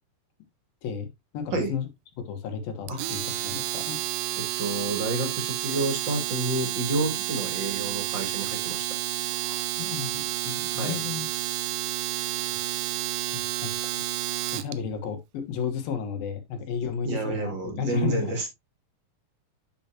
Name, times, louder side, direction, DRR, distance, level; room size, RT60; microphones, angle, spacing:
voice 1, 1.3-1.9 2.3-4.0 9.4-11.6 13.3-14.0 14.5-18.3, left 7 dB, 80° left, 3.3 m, -33 dB
Domestic sounds home sounds, 2.9-14.7, right 15 dB, 85° right, 2.3 m, -30 dB
voice 2, 4.4-9.0 10.8-11.0 17.0-18.5, right 2 dB, 40° right, 2.4 m, -29 dB
9.4 x 6.9 x 2.9 m
omnidirectional pair, 4.1 m